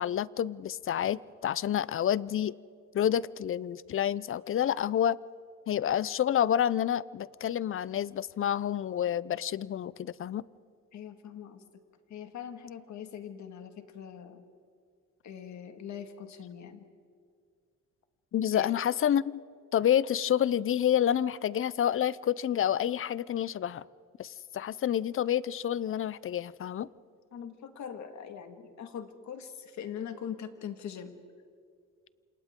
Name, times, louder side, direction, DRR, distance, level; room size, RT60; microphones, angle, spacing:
voice 1, 0.0-2.5 2.9-5.2 5.7-10.4 18.3-19.4 19.7-23.8 24.2-26.9, left 10 dB, 45° left, 20 dB, 0.5 m, -28 dB
voice 2, 10.9-11.6 12.1-14.4 15.2-16.9 18.5-18.7 27.3-31.2, left 8 dB, 70° left, 7 dB, 1.9 m, -42 dB
29.5 x 27.0 x 3.7 m, 2.1 s
cardioid pair, 90°, 30 cm